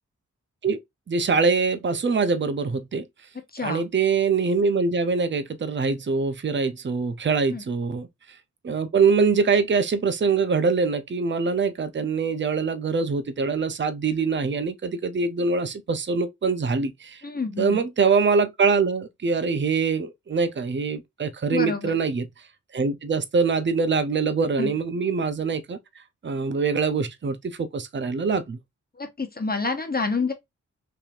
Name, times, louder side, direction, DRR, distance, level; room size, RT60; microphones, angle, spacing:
voice 1, 1.1-3.0 3.6-8.1 8.6-17.2 17.6-22.3 22.7-25.8 26.2-28.6, right 4 dB, 40° right, 0.6 m, -24 dB
voice 2, 17.2-17.8 21.5-21.9 24.6-24.7 29.0-30.3, left 4 dB, 30° left, 1.1 m, -28 dB
3.3 x 2.9 x 2.5 m
cardioid pair, 45°, 31 cm